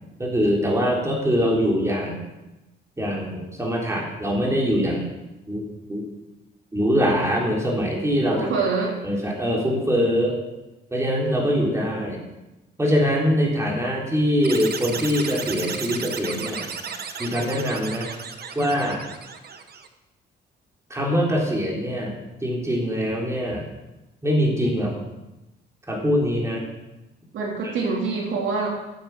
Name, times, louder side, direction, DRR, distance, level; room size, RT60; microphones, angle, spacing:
voice 1, 0.2-2.2 3.0-5.1 5.5-6.1 6.7-8.5 9.0-10.4 10.9-12.2 12.8-16.7 17.2-18.1 18.6-19.0 20.9-22.2 22.4-23.7 24.2-25.0 25.9-26.6 27.6-27.7, equal, 15° right, -2 dB, 3.7 m, -23 dB
voice 2, 8.3-9.0 27.3-28.7, right 4 dB, 75° right, -1 dB, 3.3 m, -25 dB
sound 1, 14.4-19.9, right 6 dB, 55° right, 1.2 m, -34 dB
13.5 x 8.1 x 6.1 m, 1.0 s
cardioid pair, 90°, 20 cm